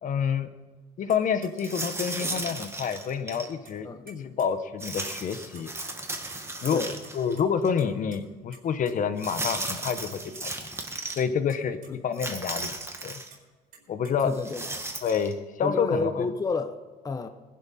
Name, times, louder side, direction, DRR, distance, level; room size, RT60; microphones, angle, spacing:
voice 1, 0.0-0.5 1.0-5.7 6.6-6.8 7.1-10.1 10.4-10.5 11.2-12.7 13.0-13.2 13.9-14.3 15.0-16.2, left 7 dB, 50° left, 10 dB, 1.0 m, -28 dB
sound 1, 1.1-1.2 1.4-1.5 1.8-3.0 3.3-4.1 4.4-4.5 4.8-5.2 5.5-6.0 6.3-7.4 7.8-8.2 8.5-8.6 8.9-9.0 9.3-9.7 10.0-10.4 10.8-11.1 11.5-11.6 11.8-11.9 12.2-13.4 13.7-14.1, right 4 dB, 60° right, 4.5 m, -49 dB
sound 2, 1.6-3.5 4.8-7.3 7.6-7.7 9.2-11.2 12.1-13.3 14.3-15.3, right 2 dB, 15° right, 1.8 m, -35 dB
voice 2, 14.2-14.6 15.6-16.8 17.0-17.3, left 4 dB, 20° left, 8 dB, 0.8 m, -30 dB
20.5 x 11.5 x 4.2 m, 1.3 s
cardioid pair, 110°, 17 cm